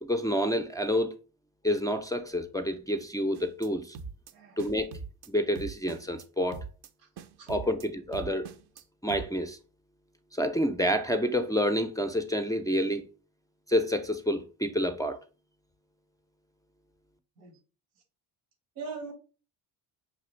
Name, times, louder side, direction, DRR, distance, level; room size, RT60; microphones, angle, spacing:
voice 1, 0.0-1.1 1.6-4.0 4.6-4.9 5.3-6.6 7.5-8.5 9.0-9.6 10.3-13.0 13.7-15.2, equal, 10° left, 0.4 m, -28 dB
sound 1, 3.3-3.7 3.9-4.3 4.6-5.3 5.6-6.3 6.5-6.9 7.2-7.9 8.1-8.8 9.1-9.3, right 4 dB, 55° right, 0.6 m, -42 dB
voice 2, 7.4-7.7 17.4-17.5 18.7-19.1, right 4 dB, 90° right, 1.4 m, -41 dB
6.0 x 2.4 x 3.1 m
supercardioid pair, 65°, 49 cm